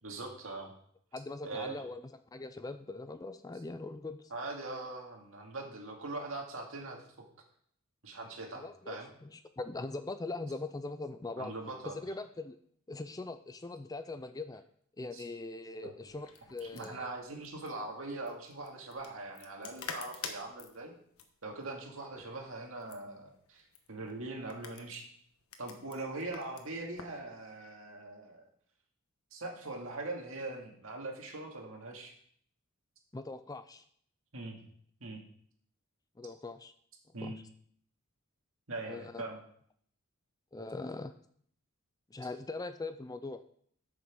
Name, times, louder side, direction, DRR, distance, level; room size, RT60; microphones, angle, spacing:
voice 1, 0.0-0.7 1.4-1.8 4.3-7.0 8.0-9.1 11.4-11.9 15.1-15.2 15.8-15.9 16.6-20.9 21.4-25.1 25.6-28.4 29.3-32.1 34.3-34.6 35.0-35.2 37.1-37.4 38.7-39.4, right 2 dB, 65° right, 1 dB, 2.3 m, -41 dB
voice 2, 1.1-4.3 8.5-11.5 11.9-12.6 12.9-14.6 15.0-17.1 33.1-33.8 36.2-36.7 37.2-37.3 38.9-39.2 40.5-41.1 42.1-43.4, left 3 dB, 15° left, 11 dB, 0.4 m, -41 dB
sound 1, 16.1-27.2, left 5 dB, 75° left, 1.3 m, -49 dB
9.1 x 6.2 x 6.1 m, 0.62 s
head